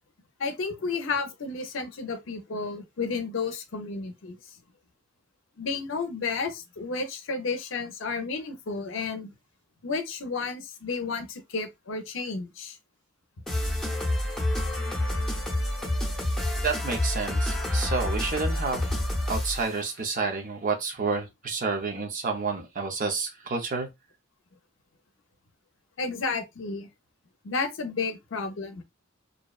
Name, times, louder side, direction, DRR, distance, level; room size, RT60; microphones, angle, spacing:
voice 1, 0.4-4.4 5.6-9.3 9.8-12.8 26.0-26.9 27.4-28.8, left 4 dB, 65° left, 0.5 m, -32 dB
sound 1, 13.5-19.7, left 1 dB, 5° left, 0.8 m, -28 dB
voice 2, 16.6-18.9 19.3-23.9, right 4 dB, 40° right, 0.6 m, -29 dB
2.6 x 2.1 x 2.3 m
head